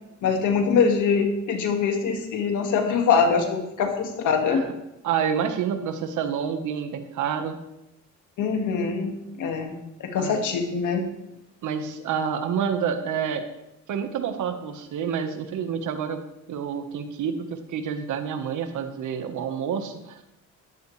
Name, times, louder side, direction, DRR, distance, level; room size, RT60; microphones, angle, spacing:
voice 1, 0.2-4.6 8.4-9.7 10.0-11.0, left 5 dB, 80° left, 4 dB, 2.2 m, -23 dB
voice 2, 5.0-7.6 10.1-10.4 11.6-13.4 13.9-16.2 16.5-20.3, right 7 dB, 80° right, 7 dB, 1.5 m, -28 dB
14.0 x 11.0 x 3.4 m, 0.89 s
cardioid pair, 90°, 30 cm